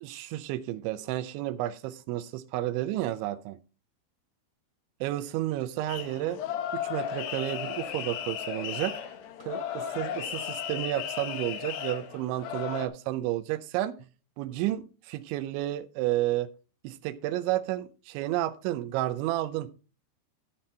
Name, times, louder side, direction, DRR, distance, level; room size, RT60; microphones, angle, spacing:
voice 1, 0.0-3.6 5.0-6.4 6.7-9.0 9.4-14.0 14.4-16.5 16.8-19.7, right 14 dB, 80° right, 2.9 m, -31 dB
sound 1, 5.9-12.9, left 9 dB, 70° left, 2.8 m, -35 dB
13.5 x 5.7 x 4.2 m
omnidirectional pair, 5.6 m